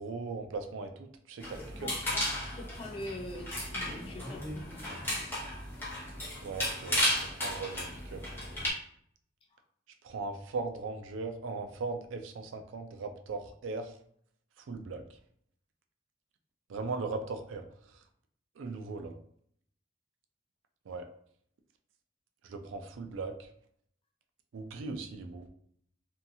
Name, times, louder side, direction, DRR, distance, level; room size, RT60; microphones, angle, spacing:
voice 1, 0.0-1.9 6.4-8.2 10.0-14.0 14.6-15.2 16.7-18.0 18.6-19.2 20.9-21.1 22.4-23.5 24.5-25.5, right 3 dB, 80° right, 6 dB, 0.4 m, -39 dB
Hanger wardrobe, 1.4-8.7, left 1 dB, 10° left, 0.9 m, -34 dB
voice 2, 1.8-2.2 2.5-4.9, left 1 dB, 30° left, 2 dB, 0.4 m, -43 dB
2.7 x 2.3 x 2.7 m, 0.65 s
head